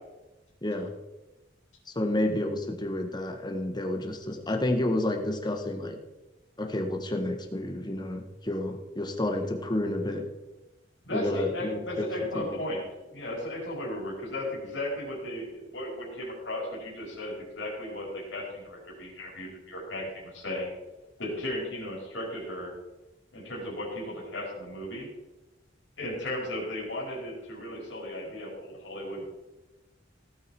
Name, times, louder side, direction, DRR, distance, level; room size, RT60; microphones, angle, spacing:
voice 1, 0.6-0.9 2.0-6.0 6.6-10.3 11.1-12.1 12.3-12.4, left 1 dB, 25° left, 4 dB, 1.8 m, -30 dB
voice 2, 11.0-12.8 13.1-20.7 21.2-22.7 23.3-25.1 26.0-29.2, left 1 dB, 80° left, -4 dB, 5.0 m, -35 dB
17.0 x 8.9 x 4.6 m, 1.0 s
head